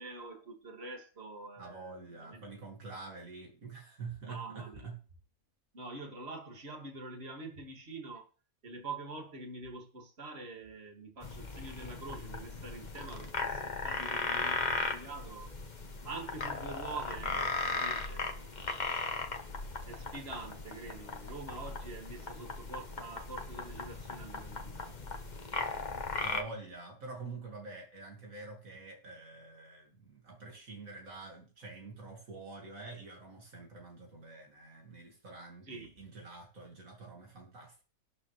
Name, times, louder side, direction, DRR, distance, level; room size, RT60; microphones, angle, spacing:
voice 1, 0.0-2.4 4.2-4.9 5.7-8.3 8.6-15.5 16.0-18.4 19.8-25.0 35.7-35.9, right 3 dB, 45° right, 2.5 m, -45 dB
voice 2, 1.6-5.0 26.0-37.8, right 3 dB, 65° right, 2.5 m, -47 dB
sound 1, 11.2-26.4, left 3 dB, 30° left, 1.3 m, -37 dB
19.0 x 6.8 x 3.3 m
omnidirectional pair, 1.5 m